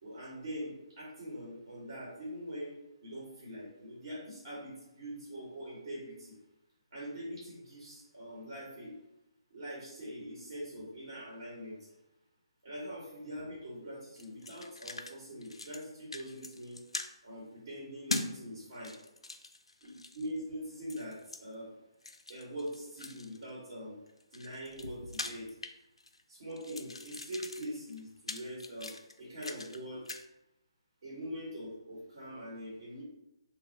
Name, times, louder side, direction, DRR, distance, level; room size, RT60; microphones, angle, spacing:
voice 1, 0.0-6.4 6.9-9.0 9.5-11.9 12.6-16.8 17.2-19.0 19.8-21.7 22.3-24.0 24.3-25.6 26.3-30.1 31.0-33.0, equal, 55° right, -5 dB, 1.1 m, -43 dB
sound 1, 14.2-15.1 15.4-15.8 16.1-17.1 18.1-18.3 18.7-20.3 20.9-21.4 22.0-23.4 24.1-26.2 26.5-29.8 30.0-30.2, left 2 dB, 80° left, 0.3 m, -42 dB
3.1 x 2.2 x 3.8 m, 0.90 s
figure-of-eight pair, 145°, 3 cm